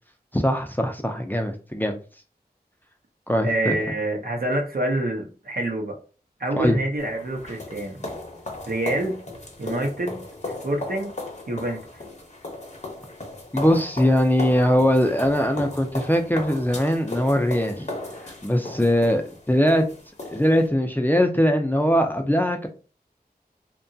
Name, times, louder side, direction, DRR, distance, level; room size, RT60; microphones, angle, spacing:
voice 1, 0.3-2.0 3.3-3.7 6.6-6.8 13.5-17.9 18.4-19.2 19.5-19.8 20.3-22.7, equal, 10° left, 4 dB, 0.4 m, -21 dB
voice 2, 3.4-6.0 6.4-8.0 8.7-9.2 9.6-11.1 11.5-12.0, right 1 dB, 65° right, 2 dB, 0.7 m, -27 dB
sound 1, 7.0-20.7, left 2 dB, 45° left, 0.7 m, -36 dB
2.8 x 2.3 x 2.6 m, 0.36 s
wide cardioid pair, 65°, 16 cm